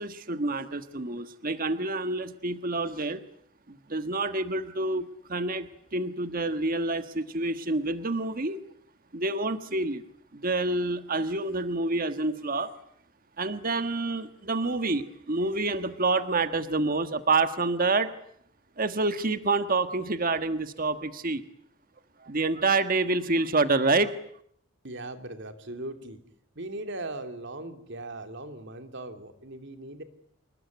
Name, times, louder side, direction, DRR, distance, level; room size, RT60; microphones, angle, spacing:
voice 1, 0.0-3.2 3.7-8.6 9.1-10.0 10.3-12.7 13.4-18.1 18.8-21.4 22.2-24.1, right 3 dB, 45° right, 10 dB, 1.4 m, -28 dB
voice 2, 24.8-26.2 26.5-30.0, right 2 dB, 60° right, 7 dB, 3.2 m, -39 dB
27.5 x 21.5 x 9.5 m, 0.68 s
head